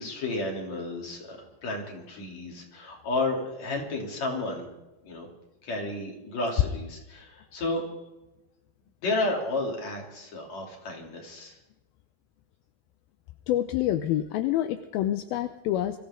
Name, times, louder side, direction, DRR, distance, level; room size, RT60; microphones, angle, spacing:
voice 1, 0.0-4.7 5.0-5.3 5.6-7.8 9.0-11.6, left 2 dB, 45° left, 0 dB, 4.2 m, -32 dB
voice 2, 13.5-16.0, left 12 dB, 80° left, 8 dB, 2.5 m, -27 dB
24.5 x 15.0 x 3.8 m, 1.0 s
omnidirectional pair, 4.4 m